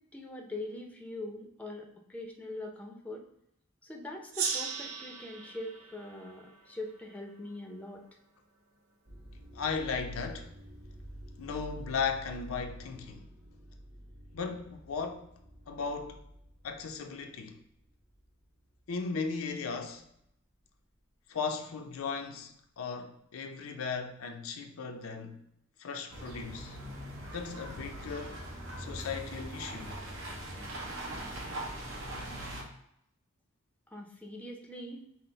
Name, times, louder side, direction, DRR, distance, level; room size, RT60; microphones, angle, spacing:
voice 1, 0.1-3.2 3.8-8.0 33.9-35.1, left 1 dB, 5° left, 0.5 m, -42 dB
Gong, 4.3-7.5, right 6 dB, 85° right, 0.5 m, -38 dB
sound 1, 9.0-18.5 18.9-19.3 20.0-20.3, equal, 40° right, 1.5 m, -49 dB
voice 2, 9.5-10.5 11.4-13.3 14.3-15.3 15.7-16.2 16.6-17.6 18.9-20.0 21.3-25.4 25.8-26.8 27.3-28.5 28.8-30.0, left 5 dB, 75° left, 0.5 m, -36 dB
sound 2, 26.1-32.6, right 1 dB, 70° right, 0.9 m, -41 dB
5.7 x 2.0 x 3.8 m
head